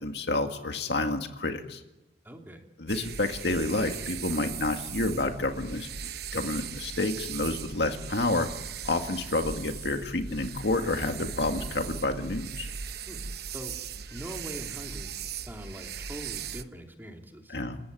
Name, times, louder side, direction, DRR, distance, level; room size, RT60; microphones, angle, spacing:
voice 1, 0.0-1.8 2.8-5.9 6.3-8.5 8.8-12.7 17.5-17.8, left 2 dB, 70° left, 5 dB, 2.1 m, -29 dB
voice 2, 2.2-2.6 13.1-13.2 13.5-13.8 14.1-15.2 15.5-17.6, equal, 10° right, 2 dB, 2.9 m, -42 dB
sound 1, 2.9-16.6, right 7 dB, 60° right, 0.9 m, -39 dB
29.0 x 15.0 x 9.3 m, 1.0 s
head